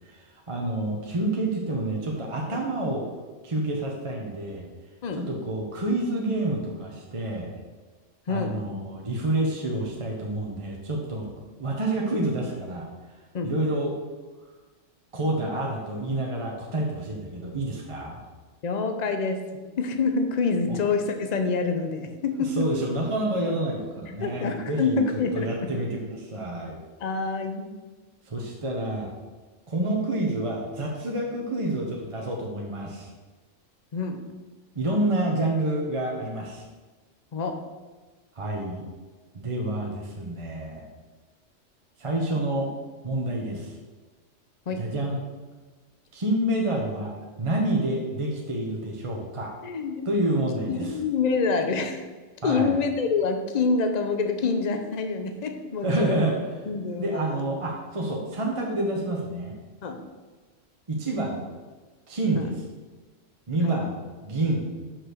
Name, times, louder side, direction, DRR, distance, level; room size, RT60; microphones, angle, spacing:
voice 1, 0.0-3.0 3.4-4.7 5.2-7.5 8.3-11.3 11.6-12.9 13.4-13.9 15.1-18.2 20.7-20.8 22.4-25.0 25.3-26.8 28.3-29.1 29.7-33.1 34.7-36.6 38.3-38.8 39.3-40.9 42.0-42.7 43.0-43.7 44.8-45.2 46.1-47.1 47.4-49.5 50.0-50.9 52.4-52.8 55.8-56.4 57.0-59.6 60.9-61.4 62.1-62.6 63.5-64.7, right 1 dB, 30° right, -1 dB, 0.9 m, -28 dB
voice 2, 8.3-8.6 13.3-13.5 18.6-19.5 19.8-22.7 23.4-23.6 24.2-25.8 27.0-27.7 33.9-34.2 37.3-37.6 44.7-44.9 49.6-50.1 50.7-52.0 52.4-56.3 56.7-57.4 59.8-60.0 62.4-62.5 63.6-63.8, left 4 dB, 40° left, 6 dB, 0.7 m, -27 dB
5.8 x 5.0 x 6.4 m, 1.3 s
omnidirectional pair, 1.3 m